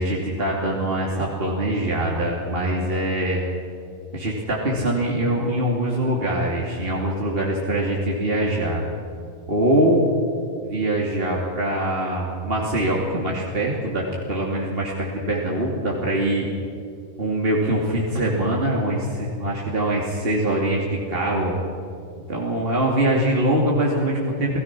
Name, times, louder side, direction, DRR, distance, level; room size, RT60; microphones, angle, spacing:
voice 1, 0.0-3.4 4.1-8.8 9.5-10.1 10.6-16.5 17.2-21.5 22.3-24.6, right 1 dB, 40° right, -3 dB, 3.0 m, -23 dB
29.5 x 18.5 x 6.1 m, 2.3 s
omnidirectional pair, 1.5 m